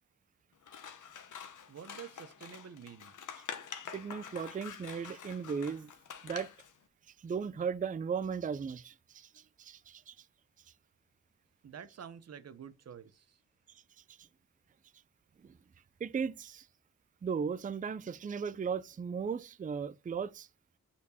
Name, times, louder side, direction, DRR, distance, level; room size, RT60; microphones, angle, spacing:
Scissors, 0.6-6.7, left 7 dB, 75° left, 1.2 m, -47 dB
voice 1, 1.7-3.1 11.6-13.4, right 8 dB, 55° right, 0.9 m, -49 dB
voice 2, 3.9-5.9 6.2-6.5 7.2-10.2 14.1-14.3 15.4-15.6 16.0-16.7 17.2-20.5, right 6 dB, 25° right, 0.4 m, -36 dB
8.4 x 4.4 x 6.8 m
wide cardioid pair, 130°, 31 cm